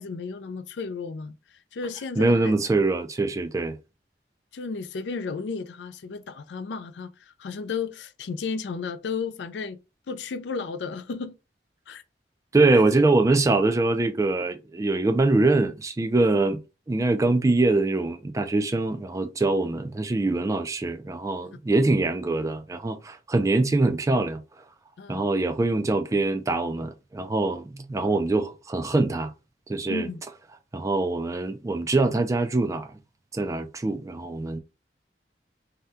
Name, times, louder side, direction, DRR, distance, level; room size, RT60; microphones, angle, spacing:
voice 1, 0.0-1.4 1.7-2.5 4.5-9.8 10.1-11.3 11.9-12.0 12.7-13.0 25.0-25.3 29.9-30.2, left 4 dB, 75° left, 0.4 m, -33 dB
voice 2, 2.2-3.8 12.5-16.6 16.9-24.4 25.1-29.3 29.7-30.1 30.7-33.0 33.3-34.6, right 2 dB, 20° right, 0.3 m, -23 dB
2.7 x 2.2 x 3.4 m
head